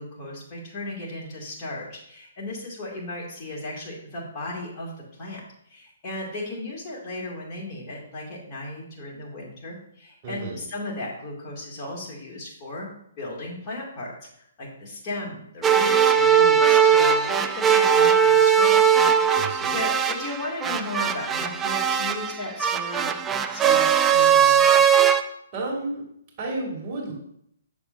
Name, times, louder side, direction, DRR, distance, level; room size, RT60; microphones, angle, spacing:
voice 1, 0.0-5.4 5.7-12.9 13.2-18.8 19.2-23.1 23.5-24.7, left 2 dB, 30° left, -3 dB, 2.3 m, -35 dB
voice 2, 10.2-10.6 19.4-19.7 25.5-26.0 26.4-27.1, right 2 dB, 30° right, -3 dB, 2.7 m, -31 dB
sound 1, 15.6-25.2, right 8 dB, 15° right, 0.4 m, -19 dB
6.9 x 6.7 x 2.6 m, 0.72 s
hypercardioid pair, 135°, 0 cm